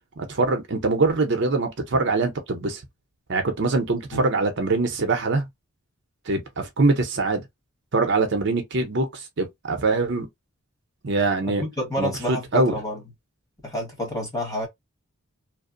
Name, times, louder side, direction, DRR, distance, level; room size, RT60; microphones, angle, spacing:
voice 1, 0.2-2.8 3.3-5.4 6.3-7.4 7.9-10.3 11.0-11.6 12.0-12.8, right 3 dB, 55° right, 0.6 m, -23 dB
voice 2, 11.5-13.0 13.6-14.7, left 1 dB, 15° left, 1.2 m, -29 dB
2.8 x 2.0 x 2.5 m
head